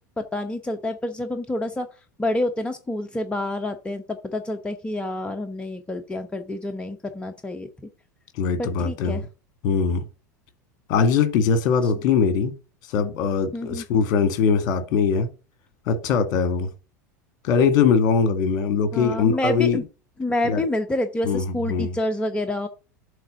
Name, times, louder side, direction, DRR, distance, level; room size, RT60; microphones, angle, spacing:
voice 1, 0.2-1.9 2.2-7.7 8.6-9.2 13.5-13.8 18.9-19.8 20.2-22.7, left 1 dB, 10° left, 0.9 m, -28 dB
voice 2, 8.4-9.2 9.6-10.0 10.9-12.5 12.9-15.3 15.9-16.7 17.4-19.8 20.4-20.6 21.2-22.0, left 6 dB, 50° left, 1.8 m, -21 dB
7.8 x 3.7 x 6.4 m
figure-of-eight pair, 80°, 10 cm